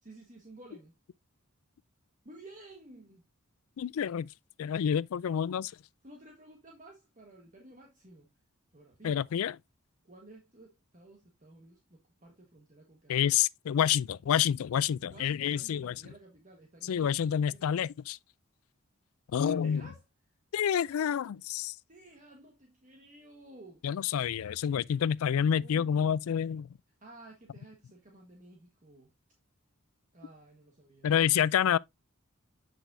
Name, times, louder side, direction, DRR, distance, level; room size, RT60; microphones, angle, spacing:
voice 1, 0.0-0.9 2.2-3.2 6.0-8.3 8.7-9.3 10.0-13.4 15.1-17.7 19.4-20.0 21.9-23.9 25.4-26.2 27.0-29.1 30.1-31.1, right 2 dB, 35° right, 1.4 m, -53 dB
voice 2, 3.8-4.3 4.6-5.7 9.0-9.5 13.1-15.9 16.9-18.2 19.3-19.8 20.5-21.7 23.8-26.7 31.0-31.8, left 9 dB, 75° left, 0.3 m, -28 dB
8.1 x 6.2 x 2.6 m
head